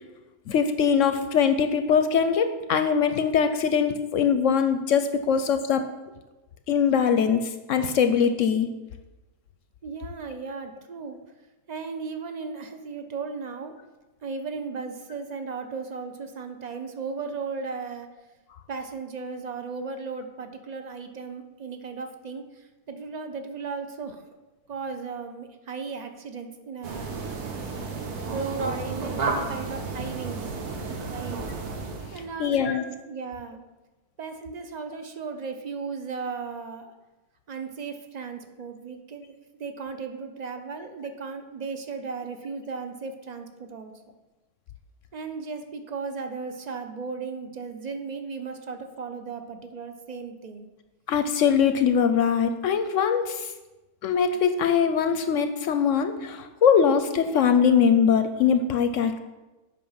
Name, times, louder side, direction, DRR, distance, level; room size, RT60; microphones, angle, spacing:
voice 1, 0.5-5.8 6.7-7.4 7.7-8.7 32.4-32.8 51.1-53.5 54.0-59.2, left 7 dB, 65° left, 9 dB, 0.8 m, -22 dB
voice 2, 9.8-11.2 11.7-13.7 14.2-18.1 18.7-24.2 24.7-27.1 28.3-30.5 31.1-31.4 32.1-32.8 33.1-33.6 34.2-36.9 37.5-43.9 45.1-50.7, right 4 dB, 60° right, 7 dB, 0.4 m, -36 dB
sound 1, 26.8-32.3, right 4 dB, 85° right, 1.6 m, -32 dB
8.4 x 5.7 x 5.6 m, 1.1 s
omnidirectional pair, 1.6 m